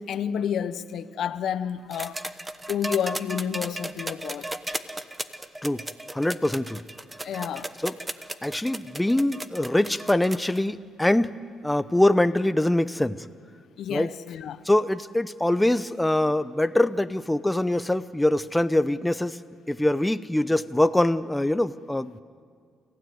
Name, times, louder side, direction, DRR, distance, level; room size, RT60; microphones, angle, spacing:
voice 1, 0.0-2.2 2.7-4.5 7.2-7.7 13.8-14.6, left 8 dB, 70° left, 0.9 m, -30 dB
sound 1, 1.9-10.6 11.8-11.9, right 1 dB, 15° right, 1.1 m, -35 dB
voice 2, 6.1-6.8 7.8-8.0 8.4-11.3 11.6-13.2 13.9-14.1 14.6-19.4 19.7-22.2, left 1 dB, 10° left, 0.6 m, -23 dB
29.0 x 16.0 x 9.5 m
cardioid pair, 90°, 0 cm